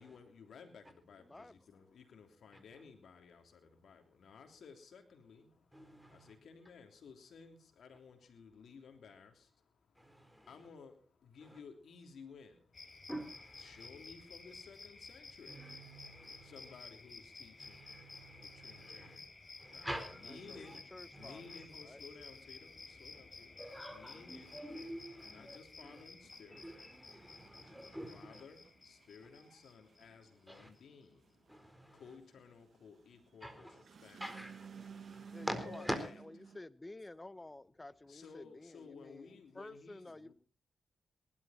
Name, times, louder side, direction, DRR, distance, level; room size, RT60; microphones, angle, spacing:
voice 1, 0.0-13.1 13.6-23.6 23.9-24.6 25.2-27.8 28.1-34.2 34.9-36.1 38.1-40.3, left 5 dB, 80° left, 3.2 m, -57 dB
voice 2, 1.2-1.5 20.5-21.4 21.7-22.0 35.3-35.9 36.5-40.3, left 2 dB, 25° left, 1.0 m, -51 dB
voice 3, 5.7-6.3 10.0-10.7 11.4-11.6 13.1-13.9 15.5-16.7 17.6-19.2 19.6-20.8 21.1-21.7 23.6-26.0 26.5-28.4 30.5-30.7 31.5-32.0 33.4-33.8 34.2-36.0, equal, ahead, 4.2 m, -46 dB
sound 1, 12.7-30.8, left 3 dB, 40° left, 3.8 m, -54 dB
sound 2, 26.2-36.6, right 6 dB, 70° right, 1.0 m, -55 dB
19.0 x 12.5 x 4.3 m
cardioid pair, 60°, 0 cm